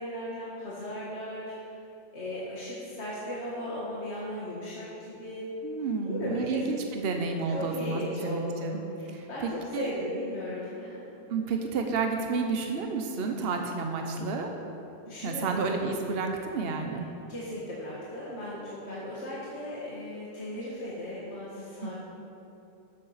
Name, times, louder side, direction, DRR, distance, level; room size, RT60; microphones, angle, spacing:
voice 1, 0.0-1.7 2.1-5.5 6.1-6.7 7.5-11.1 15.1-15.7 17.3-21.9, left 1 dB, 75° left, -7 dB, 2.0 m, -36 dB
voice 2, 5.6-8.8 9.1-9.9 11.3-14.5 15.2-17.0 21.8-21.9, right 4 dB, 60° right, 3 dB, 1.1 m, -31 dB
13.5 x 6.7 x 5.7 m, 3.0 s
omnidirectional pair, 1.1 m